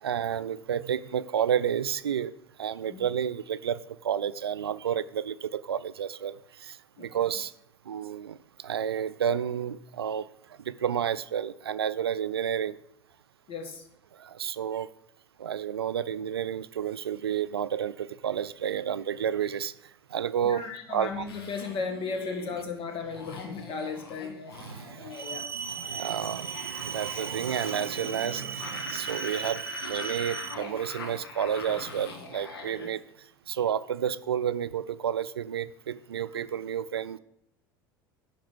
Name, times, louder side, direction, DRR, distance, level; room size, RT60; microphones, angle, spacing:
voice 1, 0.0-2.3 2.6-7.5 7.9-10.3 10.6-12.8 14.1-14.9 15.4-19.7 20.1-21.2 24.6-25.2 25.5-33.0 33.5-37.2, right 9 dB, 85° right, 0.4 m, -31 dB
voice 2, 7.0-7.3 13.5-13.8 20.4-24.4 24.9-25.5, left 4 dB, 45° left, 1.9 m, -36 dB
sound 1, 21.3-32.9, left 3 dB, 75° left, 1.7 m, -42 dB
sound 2, 25.1-30.5, right 6 dB, 15° right, 0.8 m, -37 dB
10.5 x 4.4 x 6.1 m
hypercardioid pair, 75°, 13 cm